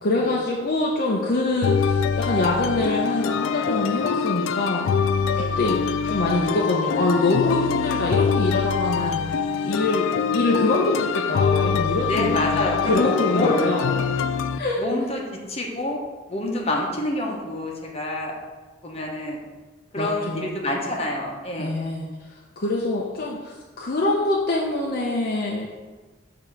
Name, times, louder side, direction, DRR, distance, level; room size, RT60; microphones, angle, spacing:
voice 1, 0.0-4.9 5.4-5.8 6.1-9.2 9.6-14.0 14.6-14.8 20.0-20.5 21.6-22.1 22.6-25.7, left 2 dB, 50° left, -3 dB, 0.7 m, -24 dB
sound 1, 1.6-14.6, left 6 dB, 85° left, 0.3 m, -24 dB
voice 2, 9.0-9.5 12.1-13.5 14.8-15.2 15.5-16.0 16.3-18.3 18.8-19.4 19.9-21.7, left 1 dB, 35° left, -1 dB, 1.1 m, -27 dB
6.9 x 2.9 x 5.9 m, 1.3 s
head